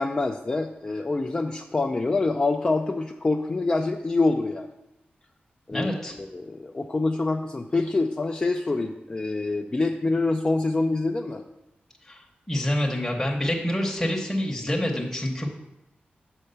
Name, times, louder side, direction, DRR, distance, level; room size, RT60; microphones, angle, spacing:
voice 1, 0.0-4.7 5.7-5.9 6.2-11.4, left 3 dB, 25° left, 3 dB, 0.4 m, -26 dB
voice 2, 5.7-6.2 12.1-12.2 12.5-15.5, left 1 dB, 10° left, -1 dB, 0.9 m, -27 dB
6.6 x 4.7 x 6.7 m, 0.92 s
wide cardioid pair, 140°, 4 cm